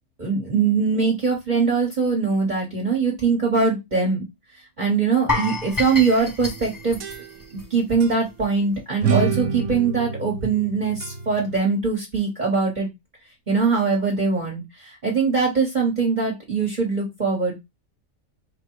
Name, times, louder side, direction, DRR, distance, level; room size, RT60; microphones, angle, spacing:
voice 1, 0.2-4.2 4.8-7.0 7.7-12.9 13.5-17.5, right 4 dB, 35° right, 0 dB, 1.3 m, -22 dB
sound 1, 5.3-8.3 8.6-8.8 9.2-9.3, left 2 dB, 20° left, 0.6 m, -29 dB
sound 2, 6.5-7.7 8.0-8.2 9.0-11.6, right 5 dB, 75° right, 1.1 m, -28 dB
4.8 x 2.2 x 4.5 m, 0.20 s
omnidirectional pair, 1.5 m